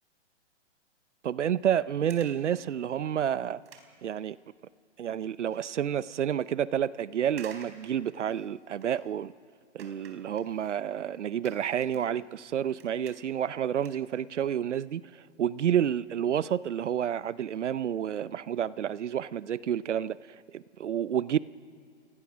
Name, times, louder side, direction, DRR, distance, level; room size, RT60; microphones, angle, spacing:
voice 1, 1.2-3.6 4.0-4.4 5.0-9.3 9.7-21.4, right 9 dB, 80° right, 0.7 m, -30 dB
sound 1, 1.5-1.7 2.1-2.5 3.0-3.1 3.4-4.8 5.1-5.6 6.1-6.2 7.3-9.2 9.8-12.4 12.7-13.5 13.8-14.8 15.0-15.2 15.9-16.0 16.3-16.4 16.6-16.7 17.0-17.2 17.7-17.8 18.0-18.1, right 6 dB, 60° right, 4.4 m, -54 dB
30.0 x 18.5 x 6.2 m
hypercardioid pair, 130°, 35 cm